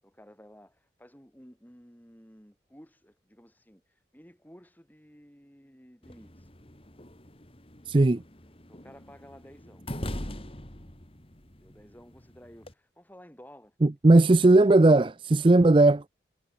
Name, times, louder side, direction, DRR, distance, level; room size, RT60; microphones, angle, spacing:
voice 1, 0.0-6.5 7.9-8.2 8.7-9.9 11.5-13.8 14.1-14.6, equal, 10° left, 7.7 m, -53 dB
sound 1, 6.0-12.7, left 1 dB, 30° left, 3.0 m, -42 dB
voice 2, 7.9-8.2 13.8-16.1, right 2 dB, 25° right, 0.5 m, -18 dB
head